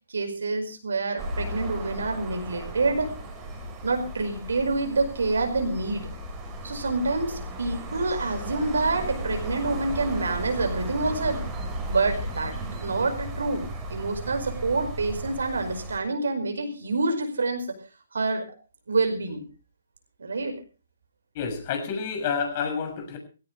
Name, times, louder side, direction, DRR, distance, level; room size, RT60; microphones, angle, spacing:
voice 1, 0.1-3.1 3.8-6.1 6.6-11.4 11.9-12.5 12.8-17.7 18.1-18.5 18.9-19.4 20.2-20.6, right 3 dB, 70° right, 7 dB, 5.2 m, -27 dB
sound 1, 1.2-16.0, right 1 dB, 15° right, 4.9 m, -35 dB
voice 2, 21.3-23.2, left 6 dB, 40° left, 5 dB, 6.7 m, -29 dB
20.0 x 17.5 x 3.3 m, 0.35 s
figure-of-eight pair, 135°, 0 cm